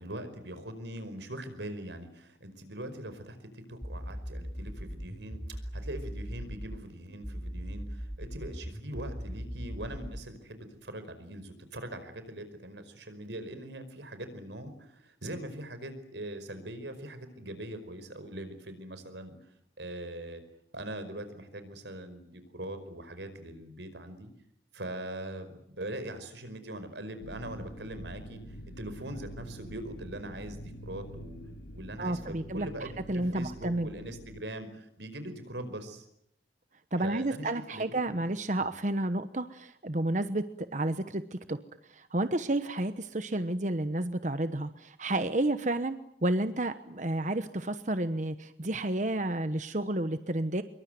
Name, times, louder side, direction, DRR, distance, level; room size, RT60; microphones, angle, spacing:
voice 1, 0.0-19.3 19.8-20.4 20.7-24.3 24.7-31.4 31.7-36.0 37.0-38.0 38.6-38.7, right 1 dB, 90° right, 10 dB, 5.1 m, -42 dB
sound 1, 3.8-6.8 7.2-10.3, equal, 5° right, 3.6 m, -39 dB
sound 2, 27.2-34.4, equal, 70° left, 4.6 m, -46 dB
voice 2, 32.0-33.9 36.9-41.6 41.9-50.6, right 1 dB, 45° right, 11 dB, 1.1 m, -31 dB
25.5 x 23.5 x 9.4 m, 0.74 s
head